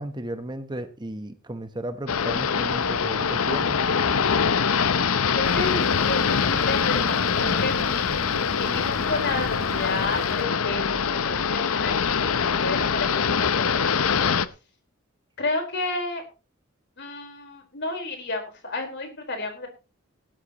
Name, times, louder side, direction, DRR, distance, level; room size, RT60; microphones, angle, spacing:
voice 1, 0.0-3.8, right 1 dB, 20° right, 9 dB, 1.0 m, -34 dB
sound 1, 2.1-14.5, left 6 dB, 80° left, 0.7 m, -23 dB
voice 2, 5.3-8.2 8.5-14.2 15.4-16.2 17.0-19.7, left 3 dB, 55° left, 4 dB, 4.4 m, -31 dB
sound 2, 5.4-10.4, right 2 dB, 45° right, 1.3 m, -41 dB
17.0 x 12.5 x 3.0 m, 0.32 s
head